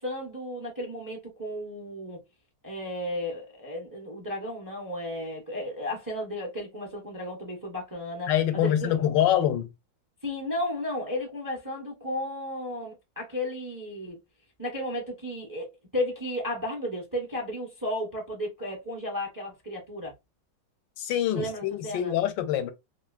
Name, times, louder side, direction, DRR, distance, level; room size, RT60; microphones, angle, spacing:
voice 1, 0.0-2.2 2.6-9.0 10.2-14.2 14.6-20.1 21.3-22.2, left 1 dB, 20° right, 0.5 m, -34 dB
voice 2, 8.3-9.7 21.0-22.7, left 11 dB, 85° left, 1.3 m, -25 dB
3.0 x 2.7 x 2.4 m
omnidirectional pair, 2.0 m